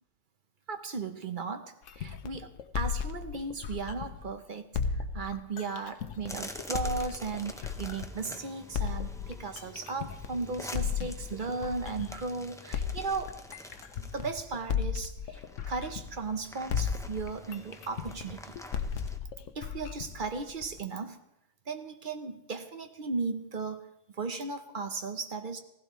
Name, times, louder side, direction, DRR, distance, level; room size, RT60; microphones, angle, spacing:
voice 1, 0.7-13.4 14.1-18.6 19.5-21.2 21.7-23.8 24.1-25.6, right 4 dB, 45° right, 8 dB, 0.9 m, -36 dB
sound 1, 1.9-4.3 4.7-8.3 8.7-12.3 12.7-16.4 16.7-20.8, left 7 dB, 80° left, 1.1 m, -35 dB
sound 2, 6.3-14.6 15.3-19.2, left 1 dB, 5° left, 0.5 m, -47 dB
16.0 x 15.5 x 3.1 m, 0.86 s
omnidirectional pair, 1.3 m